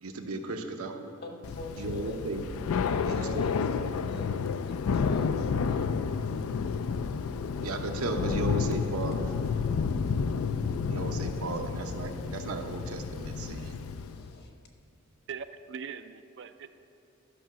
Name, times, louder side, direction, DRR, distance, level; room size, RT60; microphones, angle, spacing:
voice 1, 0.0-1.1 1.8-2.4 3.0-3.4 7.6-9.3 10.9-13.8, right 2 dB, 85° right, 4 dB, 0.9 m, -35 dB
voice 2, 1.2-2.2 2.8-4.3 4.7-5.8 13.5-14.5, left 1 dB, 50° left, 2 dB, 1.2 m, -43 dB
Thunder / Rain, 1.4-14.3, left 5 dB, 80° left, 0.4 m, -31 dB
sound 1, 6.3-12.2, right 1 dB, 15° left, 0.7 m, -51 dB
voice 3, 15.3-16.7, right 6 dB, 55° right, 10 dB, 0.4 m, -41 dB
11.5 x 5.6 x 6.1 m, 2.9 s
head